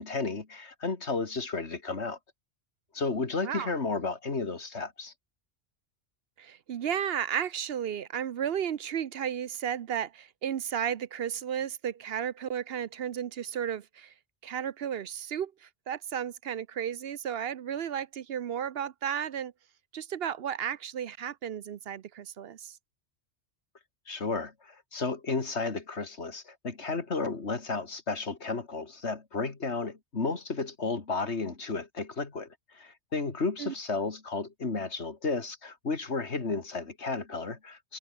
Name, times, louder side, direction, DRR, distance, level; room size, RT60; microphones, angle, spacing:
voice 1, 0.0-2.2 2.9-5.1 24.1-38.0, left 4 dB, 75° left, 2.7 m, -33 dB
voice 2, 6.4-14.1 14.4-19.5 19.9-22.7 33.6-33.7, right 9 dB, 65° right, 0.9 m, -33 dB
omnidirectional pair, 1.1 m